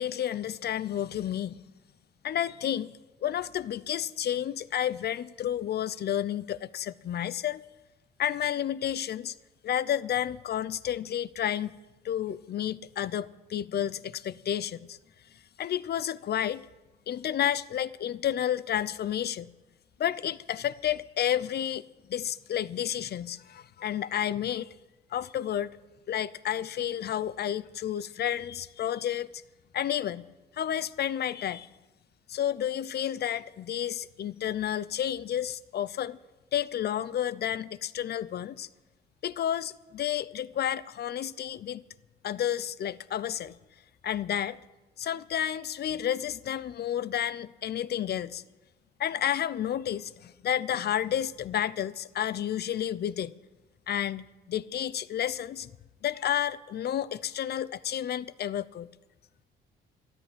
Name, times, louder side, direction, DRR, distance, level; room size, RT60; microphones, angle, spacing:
voice 1, 0.0-1.6 2.2-2.9 3.2-7.6 8.2-9.3 9.6-11.8 12.0-15.0 15.6-16.6 17.1-19.5 20.0-24.7 25.1-25.7 26.1-29.3 29.7-30.3 30.5-31.7 32.3-36.2 36.5-38.7 39.2-41.8 42.2-43.5 44.0-44.6 45.0-48.4 49.0-53.3 53.9-55.7 56.0-58.9, left 10 dB, 55° left, 0.7 m, -31 dB
13.5 x 12.0 x 8.8 m
cardioid pair, 90°, 20 cm